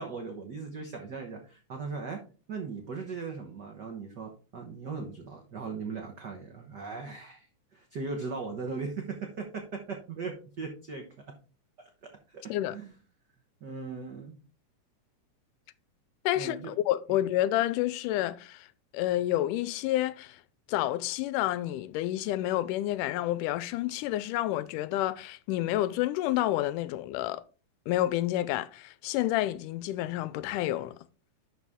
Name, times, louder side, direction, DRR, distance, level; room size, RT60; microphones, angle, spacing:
voice 1, 0.0-2.2 2.5-7.5 7.7-11.0 12.0-12.4 12.7-12.9 13.6-14.4 16.3-16.8, right 4 dB, 70° right, 0.9 m, -38 dB
voice 2, 16.3-18.7 18.9-20.4 20.7-27.4 27.9-31.0, left 14 dB, 85° left, 2.1 m, -29 dB
11.5 x 4.3 x 3.6 m
omnidirectional pair, 3.6 m